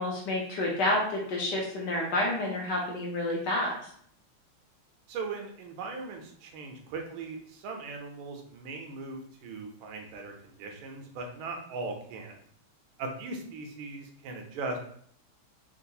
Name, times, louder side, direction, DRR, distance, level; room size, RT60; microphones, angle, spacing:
voice 1, 0.0-3.9, left 1 dB, 70° left, -2 dB, 1.1 m, -29 dB
voice 2, 5.1-12.4 13.0-14.8, right 3 dB, 80° right, 3 dB, 1.4 m, -39 dB
3.7 x 2.3 x 2.7 m, 0.62 s
omnidirectional pair, 2.3 m